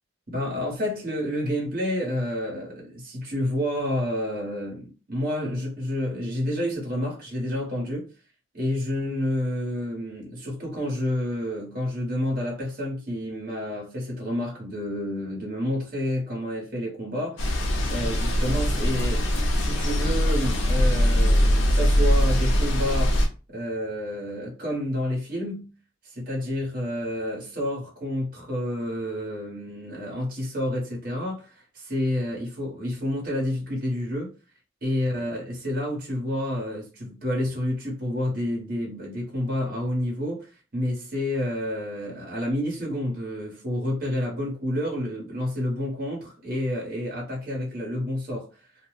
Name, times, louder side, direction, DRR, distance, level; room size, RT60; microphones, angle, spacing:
voice 1, 0.3-8.1 8.5-17.4 17.9-23.2 23.5-25.7 26.0-34.3 34.8-48.5, left 1 dB, 45° right, 1.2 m, -29 dB
sound 1, 17.4-23.3, equal, 75° left, 0.7 m, -22 dB
2.7 x 2.2 x 3.2 m
head